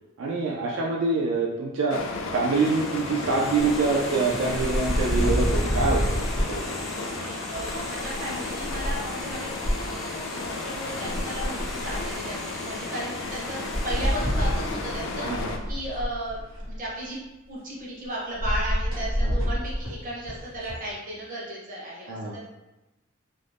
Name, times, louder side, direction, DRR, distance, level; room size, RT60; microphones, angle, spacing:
voice 1, 0.2-2.0 2.3-6.6 15.2-15.5 19.2-19.3 22.1-22.3, right 3 dB, 75° right, -3 dB, 0.3 m, -25 dB
sound 1, 1.9-15.6, left 3 dB, 75° left, 0.3 m, -33 dB
sound 2, 2.5-15.6, equal, ahead, 0.3 m, -41 dB
sound 3, 3.6-6.5 7.5-9.7 10.4-10.5 10.7-12.2 13.3-13.4 13.7-16.9 18.4-20.8, equal, 90° right, 1.2 m, -28 dB
voice 2, 7.1-17.2 17.5-22.4, right 1 dB, 45° right, -5 dB, 0.8 m, -35 dB
2.5 x 2.0 x 3.2 m, 1.0 s
head